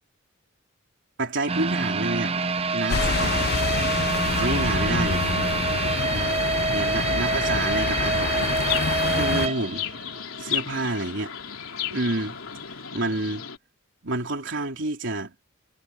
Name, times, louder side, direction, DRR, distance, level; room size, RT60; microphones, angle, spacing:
voice 1, 1.2-2.3 2.7-3.4 4.4-5.2 6.1-6.3 6.7-8.6 9.1-9.8 10.4-11.3 11.9-12.4 12.6-13.4 14.0-15.3, right 2 dB, 60° right, 3.5 m, -29 dB
sound 1, 1.5-10.5 10.8-10.9 11.4-11.5, right 4 dB, 30° right, 0.7 m, -27 dB
sound 2, 2.9-9.5, left 5 dB, 50° left, 0.6 m, -27 dB
Chirp tweet, 8.4-13.6, left 9 dB, 85° left, 3.3 m, -34 dB
head